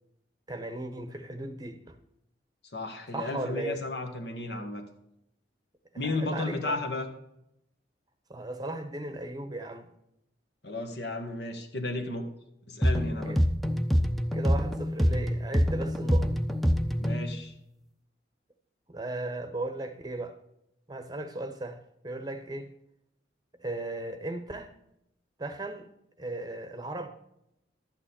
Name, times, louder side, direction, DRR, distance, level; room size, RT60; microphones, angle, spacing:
voice 1, 0.5-1.9 3.1-3.8 6.0-6.8 8.3-9.9 13.3-13.4 14.3-16.3 18.9-20.4 20.9-22.7 23.6-24.7 25.4-25.9 26.2-27.1, right 2 dB, 20° right, 0.9 m, -36 dB
voice 2, 2.7-4.8 6.0-7.1 10.6-12.3 12.7-13.4 17.0-17.5, left 2 dB, 65° left, 1.6 m, -33 dB
sound 1, 12.8-17.3, equal, ahead, 0.7 m, -26 dB
12.0 x 8.9 x 4.3 m
head